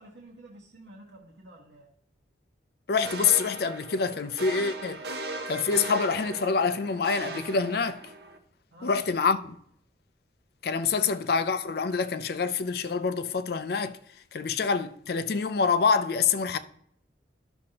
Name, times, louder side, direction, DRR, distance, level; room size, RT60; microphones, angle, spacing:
voice 1, 0.0-1.9 8.7-9.1 11.0-11.2, right 2 dB, 75° right, 1.2 m, -49 dB
voice 2, 2.9-5.0 5.5-8.0 8.8-9.6 10.6-14.0 14.3-16.6, left 5 dB, 55° left, 0.4 m, -26 dB
sound 1, 3.0-8.4, right 2 dB, 60° right, 0.8 m, -38 dB
12.0 x 6.2 x 2.9 m
head